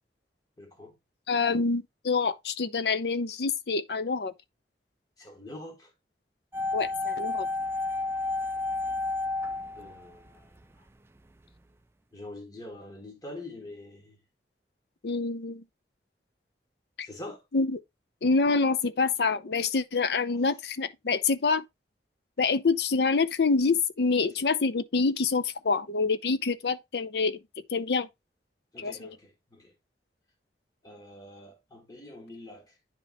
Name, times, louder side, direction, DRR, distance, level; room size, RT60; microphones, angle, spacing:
voice 1, 0.6-0.9 5.2-5.9 9.7-10.5 10.8-10.9 12.1-14.2 17.0-17.4 24.2-24.4 28.7-29.7 30.8-32.7, left 1 dB, 20° left, 1.6 m, -45 dB
voice 2, 1.3-4.3 6.7-7.5 15.0-15.6 17.5-17.8 18.2-21.6 22.4-27.4 27.7-28.1 28.8-29.2, left 4 dB, 70° left, 0.6 m, -26 dB
sound 1, 6.5-10.6 10.9-11.0, left 3 dB, 15° right, 0.3 m, -31 dB
9.8 x 3.5 x 3.4 m
head